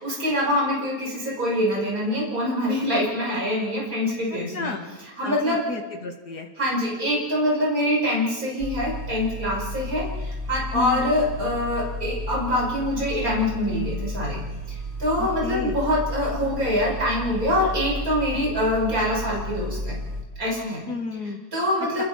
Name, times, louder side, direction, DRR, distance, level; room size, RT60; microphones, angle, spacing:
voice 1, 0.0-4.7 5.2-5.6 6.6-14.4 14.7-20.0 20.4-20.8 21.5-22.0, left 1 dB, 65° right, -3 dB, 6.2 m, -25 dB
voice 2, 4.3-4.9 5.2-6.5 10.7-11.2 15.2-15.8 20.9-21.4 22.0-22.1, left 4 dB, 85° left, 4 dB, 2.7 m, -32 dB
sound 1, 8.6-20.2, equal, 40° right, 2.7 m, -33 dB
29.5 x 20.5 x 4.5 m, 1.2 s
omnidirectional pair, 1.7 m